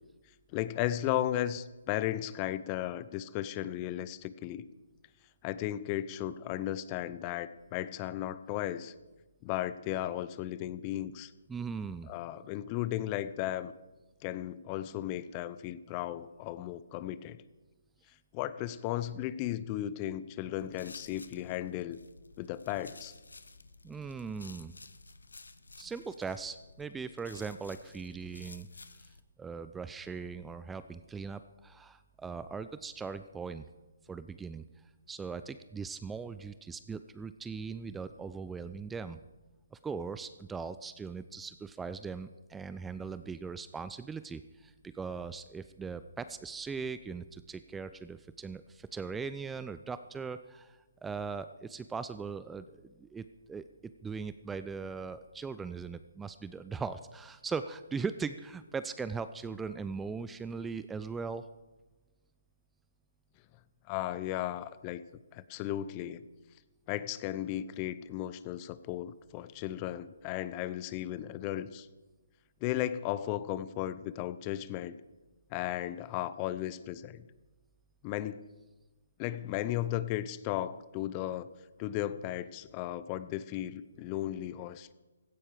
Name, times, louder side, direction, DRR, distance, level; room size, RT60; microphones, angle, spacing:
voice 1, 0.5-4.7 5.4-8.9 9.4-11.3 12.1-13.7 14.2-17.4 18.3-22.0 22.4-23.1 63.9-65.0 65.3-66.2 66.9-71.9 72.6-75.0 75.5-77.3 78.0-78.4 79.2-81.5 81.8-84.9, left 13 dB, 30° left, 16 dB, 0.7 m, -35 dB
voice 2, 11.5-12.1 23.8-24.8 25.8-28.7 29.4-33.7 34.1-34.7 35.1-39.2 39.7-53.6 54.0-61.4, right 5 dB, 10° right, 12 dB, 0.4 m, -39 dB
sound 1, 20.6-29.2, left 3 dB, 80° left, 1.0 m, -53 dB
16.5 x 14.5 x 5.0 m, 1.1 s
figure-of-eight pair, 140°, 0 cm